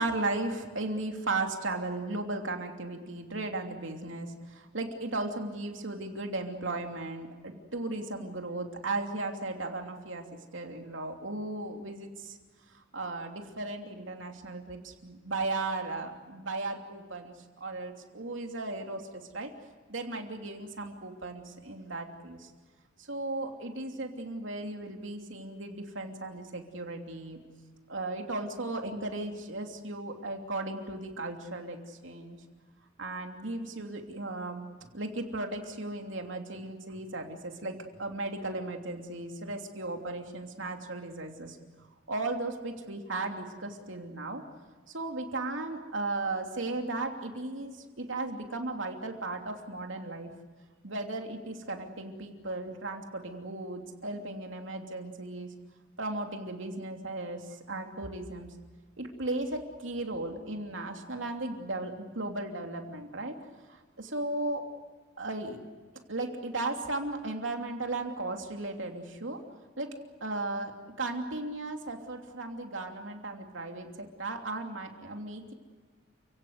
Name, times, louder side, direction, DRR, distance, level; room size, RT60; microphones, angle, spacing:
voice 1, 0.0-10.2 10.5-12.4 12.7-19.5 19.9-22.5 23.0-27.4 27.9-32.4 33.0-41.6 42.1-44.4 44.9-50.3 50.8-55.5 56.0-58.5 59.0-63.3 63.7-64.6 65.2-65.6 66.1-69.4 69.8-69.9 70.2-75.5, right 2 dB, 75° right, 3 dB, 3.0 m, -36 dB
30.0 x 16.5 x 8.2 m, 1.4 s
head